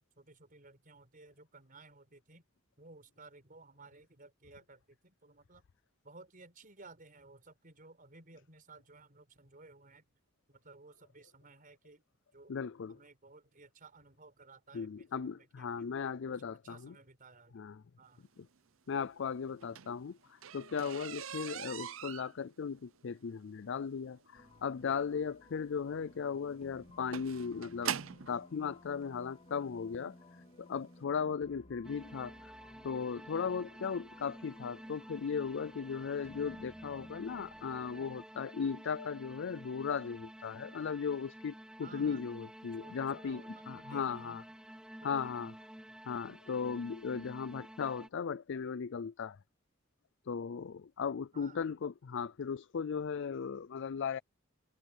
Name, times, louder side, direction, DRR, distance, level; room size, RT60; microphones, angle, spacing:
voice 1, 0.2-2.4 2.8-5.6 6.0-10.0 10.5-12.0 12.3-12.5 12.9-15.9 16.5-17.5 18.0-18.3 41.8-42.2 42.8-44.4 45.0-45.4 51.3-51.6, right 3 dB, 40° right, 4.8 m, -57 dB
voice 2, 12.5-13.0 14.7-16.9 17.5-17.8 18.4-18.5 18.9-28.0 28.3-32.5 32.8-44.4 45.0-45.5 46.1-49.4 50.2-54.2, left 6 dB, 60° left, 0.4 m, -37 dB
sound 1, 19.5-28.4 29.3-29.4 29.9-30.1 30.4-30.5 30.8-30.9, right 8 dB, 70° right, 0.7 m, -43 dB
sound 2, 24.3-38.2, left 1 dB, 30° left, 2.9 m, -58 dB
sound 3, 31.8-48.1, right 1 dB, 5° right, 0.5 m, -51 dB
head